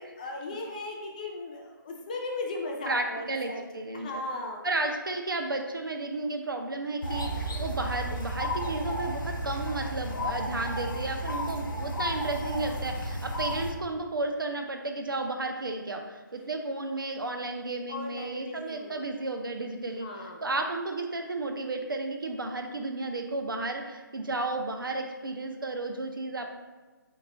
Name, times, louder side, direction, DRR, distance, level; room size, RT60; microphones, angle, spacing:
voice 1, 0.2-3.6 3.9-4.6 17.9-19.1 19.9-20.4, left 2 dB, 20° left, 1 dB, 0.4 m, -37 dB
voice 2, 2.9-4.3 4.6-26.6, right 2 dB, 75° right, 4 dB, 0.6 m, -33 dB
sound 1, 7.0-13.7, equal, 70° left, 0.8 m, -33 dB
3.5 x 3.0 x 3.9 m, 1.3 s
figure-of-eight pair, 150°, 11 cm